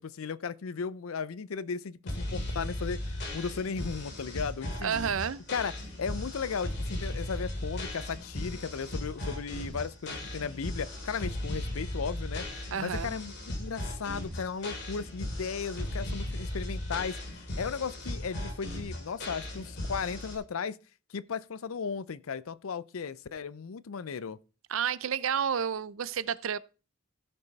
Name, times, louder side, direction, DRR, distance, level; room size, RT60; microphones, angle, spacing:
voice 1, 0.0-3.0 3.3-5.0 5.5-5.7 6.0-12.4 12.8-20.8 21.1-24.4, left 5 dB, 80° left, 0.5 m, -36 dB
sound 1, 2.1-20.3, left 1 dB, 55° left, 3.0 m, -37 dB
voice 2, 4.8-5.4 12.7-13.1 24.7-26.6, right 7 dB, 70° right, 0.5 m, -30 dB
15.5 x 5.5 x 4.0 m
head